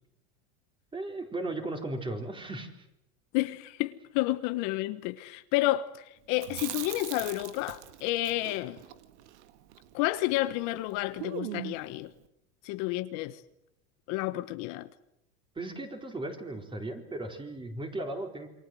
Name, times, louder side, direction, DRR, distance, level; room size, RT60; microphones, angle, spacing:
voice 1, 0.9-2.7 15.6-18.5, right 2 dB, 15° right, 4.3 m, -36 dB
voice 2, 3.3-8.8 9.9-12.1 12.6-13.4 14.1-14.9, left 17 dB, 60° left, 1.3 m, -30 dB
Chewing mastication, 6.3-10.5 10.8-10.9 11.2-11.9, right 13 dB, 75° right, 1.9 m, -41 dB
28.0 x 24.5 x 7.8 m
supercardioid pair, 130°, 35 cm